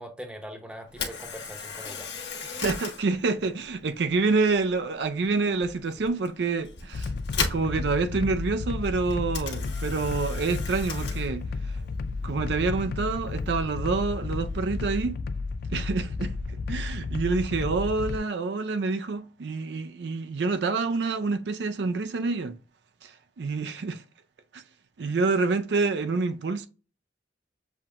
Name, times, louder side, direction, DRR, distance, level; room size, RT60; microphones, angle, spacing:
voice 1, 0.0-2.1, equal, 5° right, 0.8 m, -41 dB
Camera, 0.9-14.9, left 5 dB, 70° left, 1.4 m, -39 dB
voice 2, 2.4-11.8 12.2-15.2 15.7-22.6 23.0-24.0 24.5-24.6 25.0-26.7, right 4 dB, 65° right, 0.4 m, -27 dB
sound 1, 6.9-18.2, left 3 dB, 55° left, 0.3 m, -32 dB
7.1 x 2.8 x 2.4 m
head